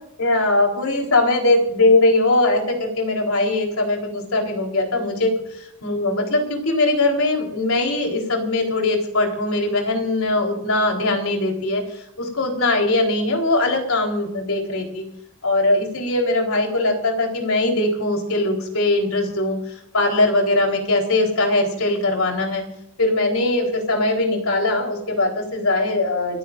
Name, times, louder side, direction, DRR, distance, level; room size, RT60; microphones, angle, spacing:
voice 1, 0.2-5.3 5.8-11.8 12.2-15.0 15.4-19.6 19.9-22.6 23.0-26.4, left 2 dB, 90° left, 2 dB, 4.1 m, -20 dB
29.0 x 15.0 x 2.6 m, 0.80 s
head